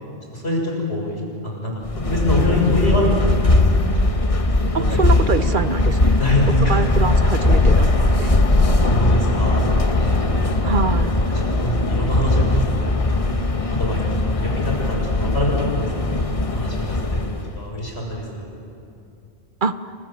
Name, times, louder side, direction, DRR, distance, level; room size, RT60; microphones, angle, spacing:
voice 1, 0.3-1.2 1.4-1.7 2.1-3.3 3.8-3.9 4.7-5.0 6.2-6.8 8.9-10.2 10.6-11.3 11.6-12.9 13.3-13.4 13.7-18.5, left 1 dB, 75° left, -1 dB, 7.0 m, -24 dB
sound 1, 1.8-17.6, left 2 dB, 35° left, 1.3 m, -19 dB
voice 2, 4.7-6.2 6.7-8.3 10.6-11.1 19.6-19.7, right 5 dB, 50° right, 11 dB, 1.0 m, -24 dB
29.5 x 26.5 x 7.6 m, 2.6 s
omnidirectional pair, 1.1 m